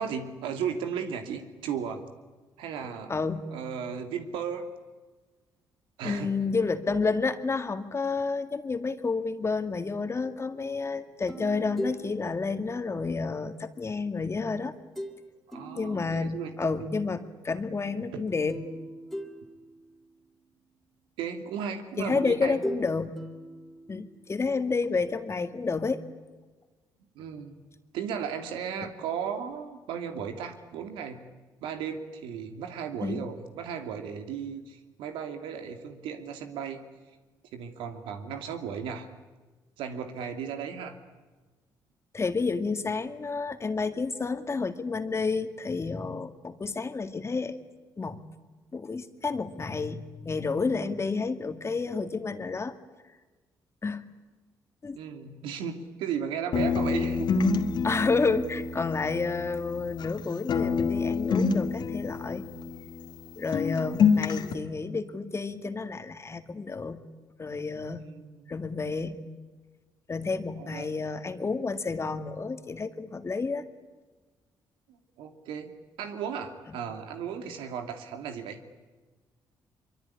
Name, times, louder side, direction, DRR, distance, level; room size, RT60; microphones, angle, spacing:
voice 1, 0.0-2.0 2.6-3.1 3.5-4.7 6.0-6.3 15.5-16.9 18.1-18.3 21.2-22.6 27.2-27.6 27.9-31.2 31.6-36.8 37.5-39.1 39.8-41.0 55.0-57.3 68.0-68.5 70.6-70.9 74.9-75.7 76.0-78.6, right 7 dB, 90° right, 7 dB, 2.6 m, -35 dB
voice 2, 3.1-3.5 6.0-14.7 15.7-18.6 22.0-23.2 23.9-26.0 33.0-33.3 42.1-47.6 48.0-48.2 48.7-52.7 53.8-54.0 54.8-55.0 57.8-62.4 63.4-67.0 67.4-68.0 68.5-69.2 70.1-73.7 76.7-76.8, left 4 dB, 35° left, 9 dB, 2.2 m, -30 dB
sound 1, 11.3-13.6 15.0-15.2 15.5-16.8 18.5-20.2 22.1-24.4, equal, ahead, 3.9 m, -40 dB
sound 2, 56.5-60.2 60.5-63.3 63.5-64.5, left 5 dB, 65° left, 2.5 m, -27 dB
24.0 x 23.5 x 9.9 m, 1.3 s
cardioid pair, 75°, 8 cm